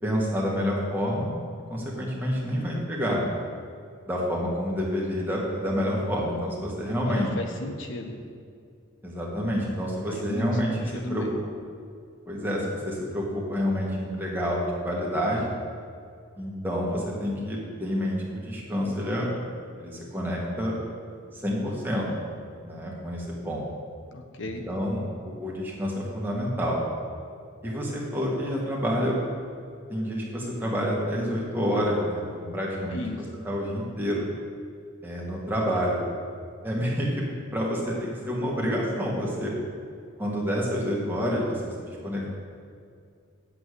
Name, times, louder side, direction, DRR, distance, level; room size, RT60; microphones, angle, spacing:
voice 1, 0.0-1.3 1.7-3.2 4.1-7.3 9.0-11.3 12.3-15.5 16.4-19.3 19.8-20.8 21.3-22.1 22.6-23.6 24.4-25.0 25.4-26.8 27.6-29.2 29.9-33.0 33.5-34.3 35.0-36.1 36.6-37.2 37.5-39.5 40.2-42.3, equal, 10° right, -4 dB, 1.9 m, -28 dB
voice 2, 7.0-8.1 10.1-11.4 24.1-24.6 32.9-33.2, left 2 dB, 65° left, 4 dB, 0.9 m, -35 dB
7.8 x 7.2 x 8.3 m, 2.3 s
head